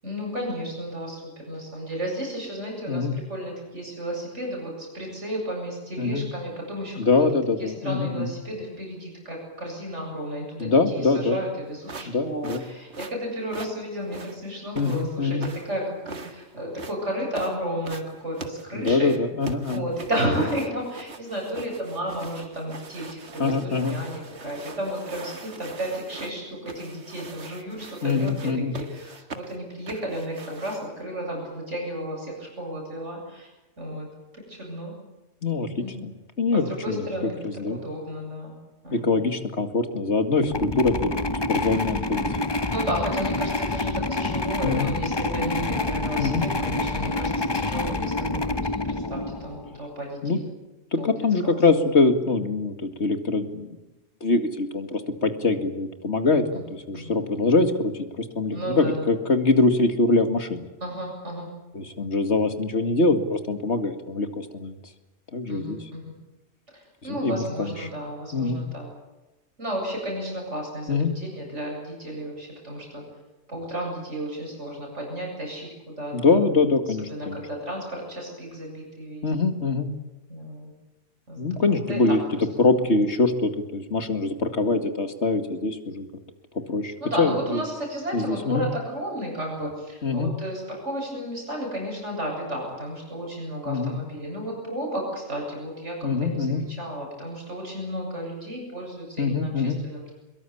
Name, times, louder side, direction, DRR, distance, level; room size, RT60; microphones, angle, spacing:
voice 1, 0.0-7.0 7.6-19.1 19.7-33.5 33.8-34.9 35.8-35.9 36.5-37.4 37.7-38.6 38.8-39.2 42.7-48.6 48.9-50.5 51.0-51.6 56.5-56.6 56.9-57.1 58.5-59.1 60.8-61.5 65.5-66.1 66.7-68.9 69.6-73.0 73.5-76.1 77.0-79.3 80.3-80.7 81.3-82.0 82.4-82.5 82.8-82.9 84.7-84.8 87.0-100.1, right 1 dB, 90° right, 0 dB, 8.5 m, -33 dB
voice 2, 7.0-8.3 10.6-11.4 12.1-12.6 14.8-15.5 18.7-19.8 23.4-24.0 28.0-28.7 35.4-36.1 36.4-37.1 37.4-37.8 38.9-42.4 44.6-44.9 46.2-46.5 50.2-50.4 50.9-53.7 54.2-60.6 61.7-64.8 65.3-65.9 67.0-67.7 68.3-68.6 70.9-71.1 76.1-77.4 79.2-79.9 81.4-82.2 82.6-86.0 86.5-87.6 88.1-88.6 90.0-90.3 93.7-93.9 96.0-96.6 99.2-99.8, left 3 dB, 70° left, 7 dB, 2.5 m, -24 dB
sound 1, 11.8-31.0, right 4 dB, 70° right, 2.1 m, -42 dB
sound 2, 40.4-49.8, left 2 dB, 25° left, 0.9 m, -27 dB
23.5 x 22.0 x 8.6 m, 1.0 s
omnidirectional pair, 1.2 m